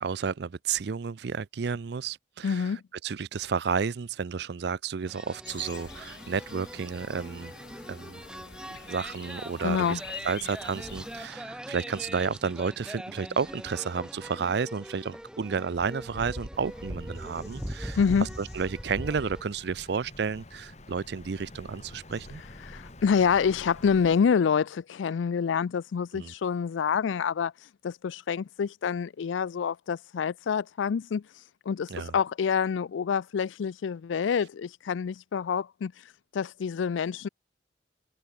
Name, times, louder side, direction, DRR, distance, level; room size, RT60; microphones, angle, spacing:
voice 1, 0.0-7.5 7.9-8.2 8.7-10.0 10.2-22.4 26.1-26.3 31.9-32.1, right 5 dB, 60° right, 0.4 m, -32 dB
voice 2, 2.4-2.8 9.6-10.0 18.0-18.3 22.6-37.3, left 6 dB, 90° left, 0.4 m, -27 dB
sound 1, 5.1-19.4, equal, 5° right, 1.4 m, -41 dB
sound 2, 5.5-11.3, left 8 dB, 60° left, 0.8 m, -47 dB
Bird vocalization bird call bird song, 16.5-24.1, left 2 dB, 35° left, 2.3 m, -49 dB
head